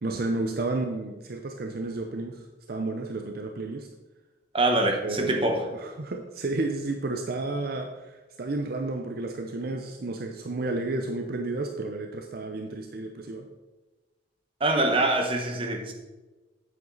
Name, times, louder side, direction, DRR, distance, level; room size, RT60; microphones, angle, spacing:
voice 1, 0.0-3.9 5.0-13.5, right 2 dB, 55° right, 4 dB, 0.6 m, -32 dB
voice 2, 4.5-5.6 14.6-15.9, right 2 dB, 30° right, 3 dB, 1.0 m, -24 dB
8.0 x 7.3 x 3.9 m, 1.2 s
head